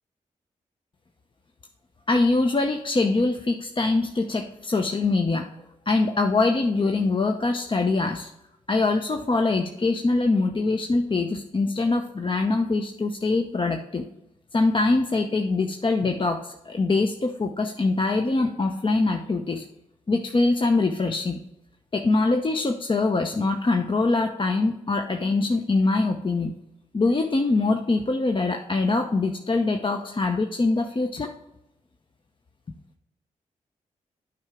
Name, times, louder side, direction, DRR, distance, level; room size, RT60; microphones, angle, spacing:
voice 1, 2.1-5.5 5.9-8.3 8.7-14.1 14.5-19.6 20.1-21.4 21.9-26.6 26.9-31.3, left 3 dB, 35° left, 5 dB, 0.6 m, -23 dB
8.7 x 4.8 x 3.5 m, 0.90 s
supercardioid pair, 40°, 15 cm